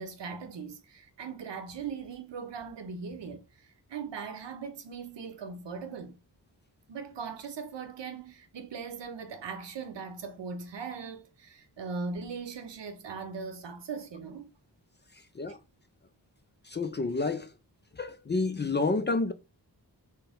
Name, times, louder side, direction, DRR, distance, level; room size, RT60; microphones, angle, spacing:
voice 1, 0.0-6.2 6.9-14.5, right 5 dB, 80° right, 0.8 m, -39 dB
voice 2, 15.1-15.6 16.6-17.6 17.9-19.3, left 3 dB, 25° left, 0.3 m, -30 dB
4.2 x 2.1 x 3.5 m
wide cardioid pair, 70°, 42 cm